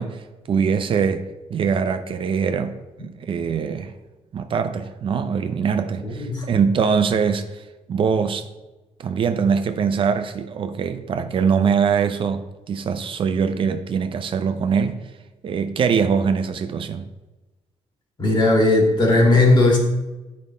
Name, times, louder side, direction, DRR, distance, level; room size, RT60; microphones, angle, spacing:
voice 1, 0.0-3.9 4.3-7.6 7.9-8.5 9.0-15.0 15.4-17.0, right 6 dB, 50° right, 0.5 m, -23 dB
voice 2, 6.0-6.5 18.2-19.8, left 2 dB, 40° left, 2.1 m, -17 dB
8.9 x 5.2 x 4.2 m
cardioid pair, 125°, 11 cm